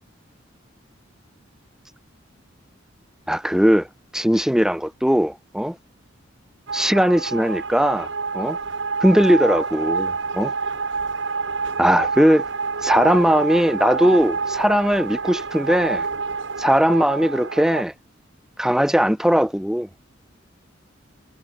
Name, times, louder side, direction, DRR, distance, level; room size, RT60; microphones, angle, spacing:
voice 1, 3.3-3.9 4.1-5.8 6.7-8.1 8.3-8.6 9.0-10.5 11.8-12.4 12.8-16.1 16.6-17.9 18.6-19.9, equal, 5° right, 0.6 m, -19 dB
sound 1, 6.7-17.8, right 4 dB, 65° right, 1.6 m, -27 dB
head